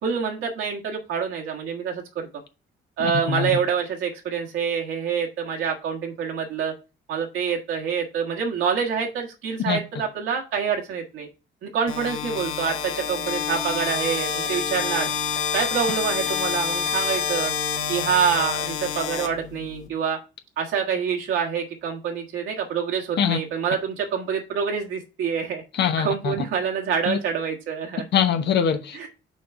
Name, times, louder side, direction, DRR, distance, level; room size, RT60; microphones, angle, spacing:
voice 1, 0.0-2.3 3.0-6.7 7.1-11.3 11.6-15.1 15.5-17.5 17.9-20.2 20.6-25.6 26.0-28.1 28.9-29.1, right 7 dB, 75° right, 1.7 m, -26 dB
voice 2, 3.0-3.5 9.7-9.8 23.2-23.4 25.7-26.3 27.1-27.2 28.1-29.1, left 8 dB, 60° left, 1.0 m, -23 dB
sound 1, 11.9-19.9, left 7 dB, 85° left, 1.5 m, -27 dB
6.4 x 3.9 x 5.8 m
cardioid pair, 115°, 20 cm